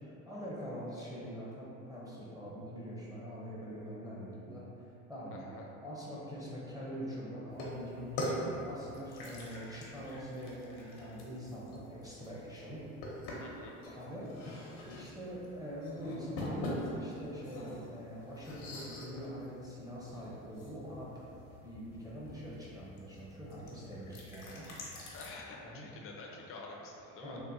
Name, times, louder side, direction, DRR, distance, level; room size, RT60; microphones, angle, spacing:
voice 1, 0.0-5.5 5.8-12.8 13.8-21.3 21.6-24.7 25.6-25.8 27.2-27.4, equal, 10° right, -7 dB, 0.6 m, -44 dB
voice 2, 5.3-5.8 8.2-8.5 13.4-13.7 25.1-27.4, left 3 dB, 35° left, -1 dB, 0.5 m, -48 dB
sound 1, 7.5-25.3, left 1 dB, 80° left, 0.8 m, -44 dB
3.6 x 2.2 x 2.6 m, 2.7 s
supercardioid pair, 90°, 38 cm